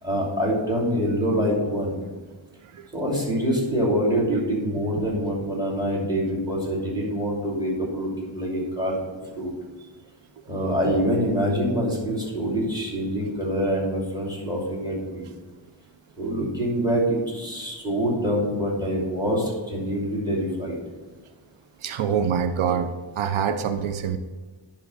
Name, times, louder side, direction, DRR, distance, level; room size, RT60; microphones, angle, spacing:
voice 1, 0.0-2.0 2.9-9.5 10.5-15.3 16.2-20.8, equal, 10° right, -2 dB, 2.7 m, -25 dB
voice 2, 21.8-22.9 23.2-24.2, right 7 dB, 85° right, 9 dB, 0.6 m, -25 dB
10.5 x 3.5 x 6.2 m, 1.3 s
wide cardioid pair, 105°, 47 cm